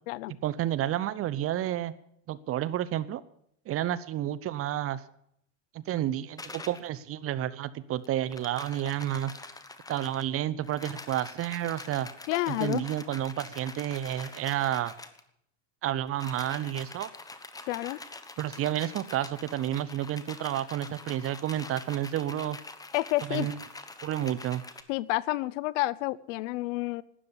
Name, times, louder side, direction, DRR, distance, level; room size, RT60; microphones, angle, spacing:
voice 1, 0.4-1.9 2.3-3.2 3.7-5.0 5.7-9.3 9.9-12.1 12.5-14.9 15.8-17.1 18.4-22.6 23.3-23.6 24.0-24.6, right 12 dB, 40° right, 16 dB, 0.8 m, -30 dB
sound 1, 6.4-6.9 8.0-10.3 10.6-15.2 16.1-24.8, left 3 dB, 10° left, 1.0 m, -45 dB
voice 2, 12.3-12.8 17.7-18.0 22.9-23.5 24.9-27.0, left 19 dB, 80° left, 21 dB, 0.7 m, -29 dB
12.5 x 9.8 x 8.7 m, 0.73 s
supercardioid pair, 125°, 36 cm